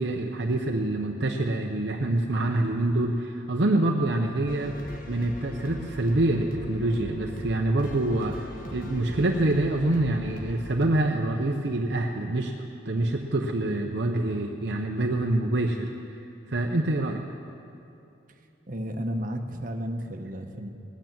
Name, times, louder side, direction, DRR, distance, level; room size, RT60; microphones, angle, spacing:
voice 1, 0.0-4.8 5.1-12.6 12.8-15.9 16.5-17.2, right 2 dB, 60° right, 1 dB, 0.8 m, -26 dB
sound 1, 4.5-10.9, left 1 dB, 45° left, 1.3 m, -40 dB
voice 2, 18.7-20.7, equal, 45° right, 4 dB, 1.1 m, -32 dB
18.5 x 9.5 x 7.5 m, 2.8 s
head